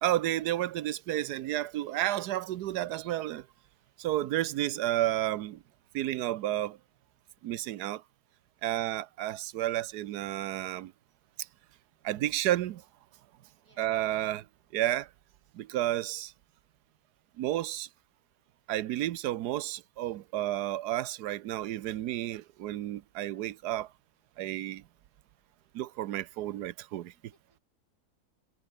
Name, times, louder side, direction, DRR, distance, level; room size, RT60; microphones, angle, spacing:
voice 1, 0.0-3.4 4.0-5.6 5.9-6.8 7.4-8.0 8.6-10.9 12.0-12.8 13.8-14.4 14.7-15.1 15.5-16.3 17.4-17.9 18.7-23.9 24.4-24.8 25.7-27.1, right 14 dB, 85° right, 1.3 m, -31 dB
voice 2, 27.1-27.6, right 2 dB, 55° right, 5.6 m, -68 dB
omnidirectional pair, 1.7 m